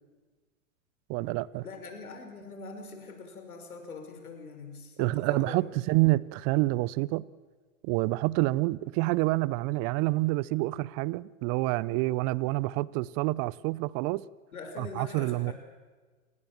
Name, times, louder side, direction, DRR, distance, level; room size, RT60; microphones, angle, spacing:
voice 1, 1.1-1.6 5.0-7.2 7.8-14.2 14.8-15.5, right 20 dB, 35° right, 0.7 m, -28 dB
voice 2, 1.6-5.6 14.5-15.5, left 4 dB, 85° left, 5.6 m, -43 dB
29.0 x 19.5 x 7.3 m
hypercardioid pair, 110°, 43 cm